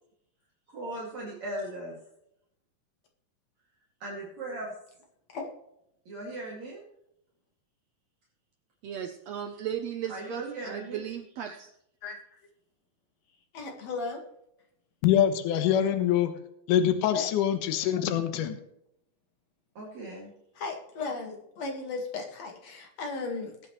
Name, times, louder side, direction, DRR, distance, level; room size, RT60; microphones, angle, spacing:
voice 1, 0.7-2.0 4.0-4.7 6.1-6.8 10.1-11.0 19.8-20.3, right 1 dB, 55° right, -5 dB, 3.7 m, -38 dB
voice 2, 8.8-11.7, right 9 dB, 75° right, 6 dB, 1.5 m, -36 dB
voice 3, 13.5-14.2 17.1-17.3 20.6-23.5, left 4 dB, 55° left, 2 dB, 2.7 m, -35 dB
voice 4, 15.0-16.3 16.7-18.6, left 10 dB, 70° left, 8 dB, 2.5 m, -24 dB
21.0 x 8.4 x 3.2 m, 0.77 s
omnidirectional pair, 4.0 m